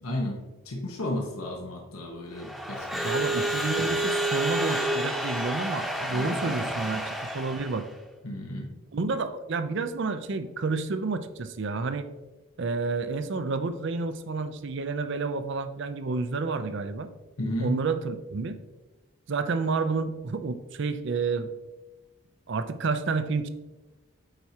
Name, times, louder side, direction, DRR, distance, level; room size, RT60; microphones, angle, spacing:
voice 1, 0.0-3.3 6.1-6.7 8.2-8.7 17.4-17.8, left 1 dB, 90° left, 0 dB, 1.2 m, -33 dB
Crowd / Alarm, 2.3-7.9, right 1 dB, ahead, 0.9 m, -29 dB
voice 2, 3.0-7.9 8.9-12.1 12.6-17.1 17.6-18.6 19.3-21.5 22.5-23.5, right 4 dB, 55° right, 11 dB, 0.5 m, -30 dB
8.9 x 4.6 x 2.8 m, 1.2 s
head